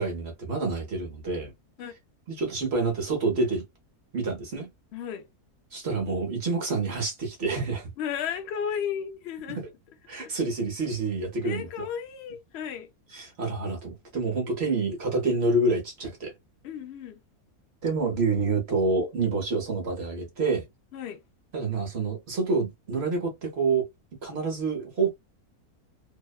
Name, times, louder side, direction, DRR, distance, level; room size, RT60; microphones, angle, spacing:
voice 1, 0.0-1.5 2.3-3.6 4.1-4.7 5.7-7.9 9.5-9.7 10.1-11.7 13.1-16.3 17.8-20.6 21.5-23.9 24.2-25.1, right 3 dB, 50° right, 0.9 m, -27 dB
voice 2, 4.9-5.2 8.0-9.6 10.2-10.3 11.4-12.9 16.6-17.2 20.9-21.2, left 8 dB, 65° left, 0.6 m, -34 dB
2.8 x 2.1 x 2.2 m
omnidirectional pair, 1.6 m